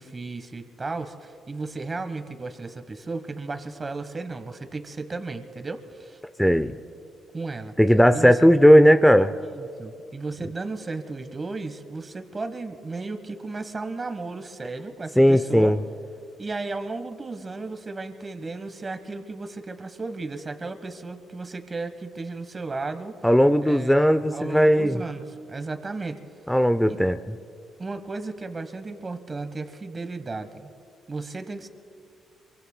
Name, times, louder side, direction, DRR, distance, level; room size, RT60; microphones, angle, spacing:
voice 1, 0.0-6.2 7.3-7.7 8.1-8.4 9.4-15.7 16.4-23.1 23.6-26.2 26.9-27.0 27.8-30.7 31.1-31.7, right 3 dB, 30° right, 9 dB, 1.2 m, -34 dB
voice 2, 6.4-6.8 7.8-9.3 15.2-15.8 23.2-25.0 26.5-27.3, equal, 5° left, 9 dB, 0.5 m, -17 dB
27.0 x 24.0 x 2.2 m, 2.4 s
cardioid pair, 90°, 0 cm